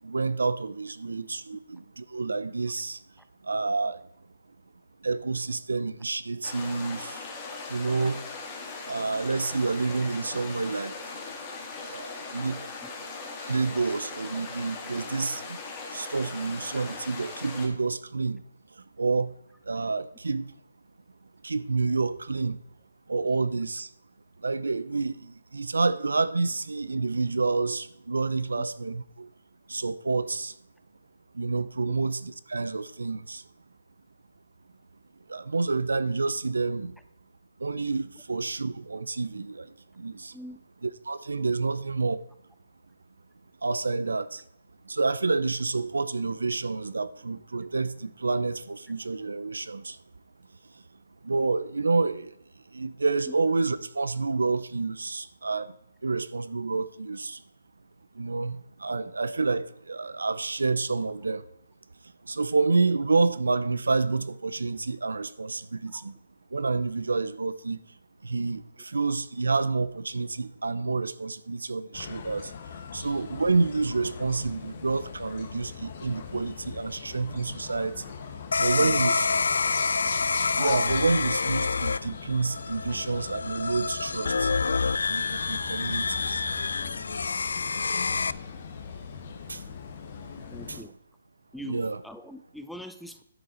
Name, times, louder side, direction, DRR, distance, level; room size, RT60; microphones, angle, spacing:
voice 1, 0.0-3.0 3.4-4.0 5.0-7.3 7.7-8.2 8.8-11.2 11.9-12.6 13.4-15.6 15.9-18.4 18.8-19.3 19.6-20.5 21.4-22.6 23.1-23.9 24.4-29.3 29.7-30.6 31.3-33.5 35.3-37.0 37.6-40.3 40.8-42.2 43.6-44.4 44.8-50.0 51.2-55.7 56.0-57.4 58.1-61.5 62.2-66.2 66.5-67.8 68.2-72.5 72.9-78.1 78.6-79.3 80.6-84.5 85.1-86.5 89.5-89.6 90.2-90.8 91.7-92.0, right 3 dB, 85° right, 0.6 m, -29 dB
sound 1, 6.4-17.7, left 4 dB, 20° left, 1.8 m, -39 dB
sound 2, 71.9-90.8, left 6 dB, 40° left, 1.2 m, -40 dB
sound 3, 78.5-88.3, left 4 dB, 75° left, 0.3 m, -27 dB
voice 2, 78.8-79.2 90.5-90.9 91.5-93.2, equal, ahead, 0.5 m, -43 dB
10.5 x 6.7 x 4.3 m
hypercardioid pair, 155°, 0 cm